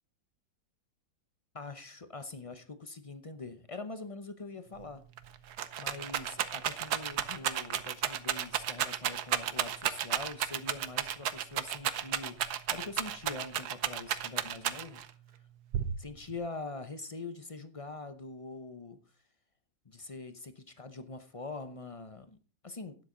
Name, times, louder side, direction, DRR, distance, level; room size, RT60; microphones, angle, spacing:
voice 1, 1.5-5.0 5.8-12.4 12.7-15.0 16.0-19.0 19.8-22.4 22.6-23.0, left 3 dB, 40° left, 10 dB, 0.4 m, -43 dB
Rattle, 4.8-4.9 5.2-15.1 15.7-16.4, right 10 dB, 65° right, 1.3 m, -33 dB
12.0 x 9.9 x 3.8 m, 0.35 s
omnidirectional pair, 1.9 m